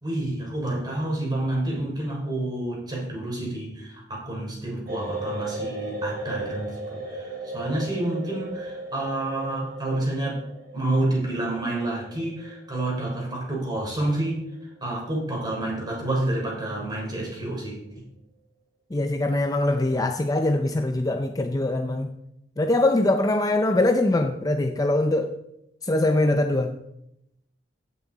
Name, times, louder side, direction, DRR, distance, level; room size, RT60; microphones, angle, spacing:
voice 1, 0.0-10.4 10.7-14.4 14.8-18.0, right 1 dB, 25° right, -3 dB, 3.7 m, -29 dB
sound 1, 4.9-14.8 15.1-15.2, right 2 dB, 55° right, 2.4 m, -36 dB
voice 2, 18.9-22.1 22.6-25.3 25.8-26.7, left 2 dB, 20° left, 6 dB, 0.5 m, -22 dB
15.5 x 6.2 x 4.0 m, 0.81 s
head